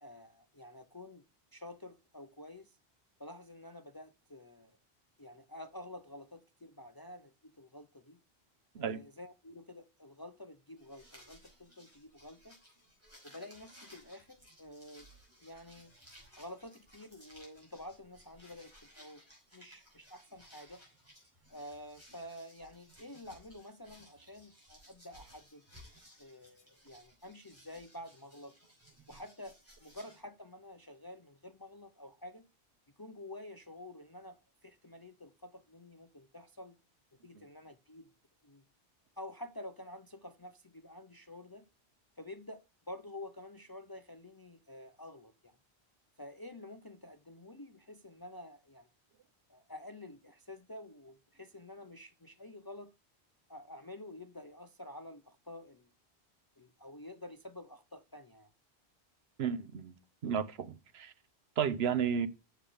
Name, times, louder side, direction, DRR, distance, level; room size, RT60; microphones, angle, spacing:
voice 1, 0.0-1.3 1.5-2.8 3.2-4.8 5.2-8.2 8.8-12.6 13.2-15.1 15.4-15.9 16.3-19.2 19.5-20.8 21.5-25.6 26.2-28.5 29.1-32.5 33.0-36.8 37.2-38.1 38.4-38.6 39.2-41.7 42.2-45.6 46.2-48.9 49.5-52.9 53.5-55.9 56.6-58.5, left 1 dB, 30° left, 0.4 m, -49 dB
sound 1, 10.8-30.2, equal, 15° right, 5.0 m, -60 dB
voice 2, 59.4-59.9 60.2-61.1 61.6-62.3, right 7 dB, 70° right, 1.0 m, -32 dB
7.4 x 7.1 x 5.0 m
omnidirectional pair, 1.1 m